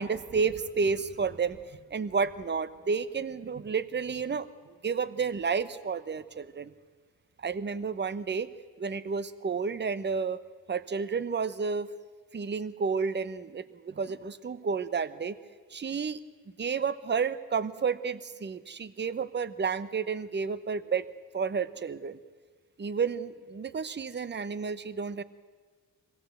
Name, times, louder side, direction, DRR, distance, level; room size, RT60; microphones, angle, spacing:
voice 1, 0.0-6.7 7.4-8.5 8.8-10.4 10.7-11.9 12.3-15.3 15.7-16.2 16.6-21.1 21.3-22.2 22.8-25.2, right 5 dB, 30° right, 15 dB, 0.8 m, -31 dB
22.5 x 16.0 x 7.9 m, 1.5 s
wide cardioid pair, 115°, 35 cm